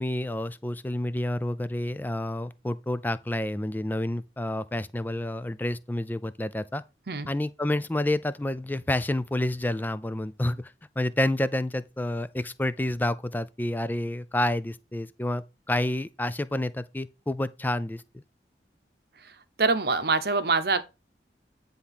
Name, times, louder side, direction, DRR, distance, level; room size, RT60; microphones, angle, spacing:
voice 1, 0.0-6.8 7.3-18.0, left 1 dB, 10° left, 0.4 m, -29 dB
voice 2, 19.2-20.8, right 4 dB, 60° right, 0.8 m, -25 dB
9.8 x 3.5 x 5.7 m
head